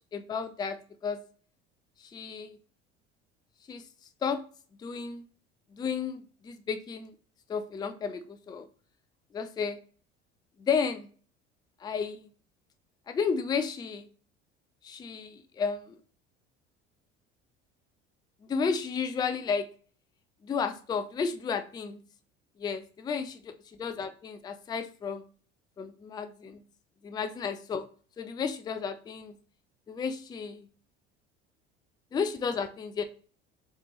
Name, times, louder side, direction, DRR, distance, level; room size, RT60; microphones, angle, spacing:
voice 1, 0.1-0.8 1.0-1.2 2.1-2.6 3.7-3.8 4.2-4.4 4.8-5.2 5.7-7.1 7.5-8.7 9.3-9.8 10.6-11.1 11.8-12.3 13.1-14.1 14.8-16.0 18.5-19.7 20.4-22.0 22.6-23.5 23.8-25.2 25.8-26.6 27.0-27.9 28.2-29.4 29.9-30.7 32.1-33.0, left 6 dB, 15° left, 9 dB, 0.3 m, -32 dB
3.2 x 3.1 x 3.0 m, 0.41 s
hypercardioid pair, 65°, 34 cm